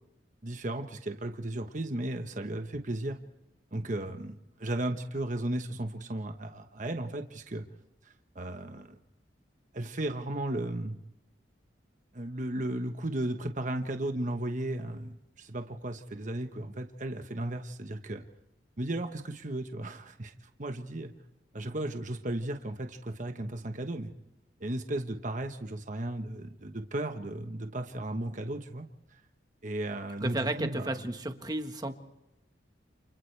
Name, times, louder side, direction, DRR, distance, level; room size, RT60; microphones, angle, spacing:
voice 1, 0.4-3.2 3.7-4.3 4.6-7.6 8.0-9.0 9.7-11.0 12.1-18.2 18.8-21.1 21.5-24.1 24.6-28.9 29.6-30.9, right 1 dB, 45° right, 6 dB, 1.1 m, -35 dB
voice 2, 30.2-32.0, right 1 dB, 20° right, 6 dB, 1.4 m, -33 dB
29.5 x 29.0 x 3.4 m, 0.95 s
head